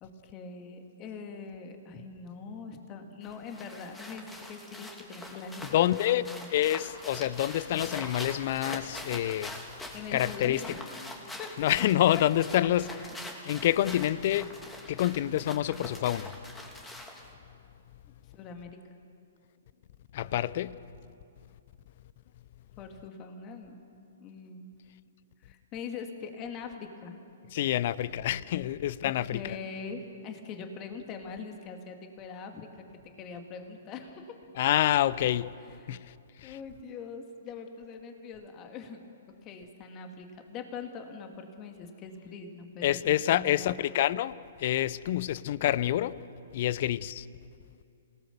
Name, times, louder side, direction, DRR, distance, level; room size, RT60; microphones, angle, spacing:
voice 1, 0.0-6.5 9.9-11.0 11.4-11.5 18.3-18.8 22.8-24.8 25.4-27.2 29.0-32.7 33.0-34.4 35.8-35.9 36.4-39.1 39.4-43.7, left 5 dB, 30° left, 2.3 m, -42 dB
sound 1, 3.2-17.3, left 1 dB, 10° left, 2.9 m, -44 dB
voice 2, 5.7-9.6 9.9-10.6 11.6-12.9 13.5-14.5 14.9-16.3 20.1-20.7 27.5-29.6 34.6-35.5 35.9-36.0 36.4-36.6 42.8-44.3 44.6-46.1 46.5-47.3, left 13 dB, 50° left, 0.6 m, -27 dB
27.5 x 18.0 x 7.0 m
figure-of-eight pair, 120°, 0 cm